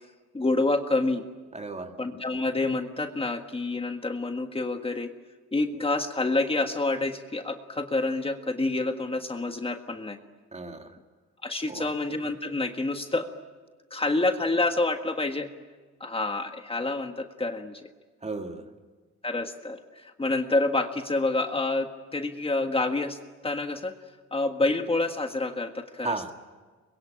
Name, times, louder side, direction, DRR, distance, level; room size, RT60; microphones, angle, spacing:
voice 1, 0.3-1.2 2.0-5.1 5.5-10.2 11.4-13.3 13.9-15.5 16.0-17.9 19.2-24.0 24.3-26.3, left 2 dB, 20° left, 5 dB, 1.6 m, -28 dB
voice 2, 1.5-2.0 10.5-11.0 11.7-11.9 18.2-18.7 26.0-26.3, right 3 dB, 20° right, 5 dB, 2.3 m, -34 dB
25.0 x 22.5 x 8.8 m, 1.4 s
cardioid pair, 90°, 30 cm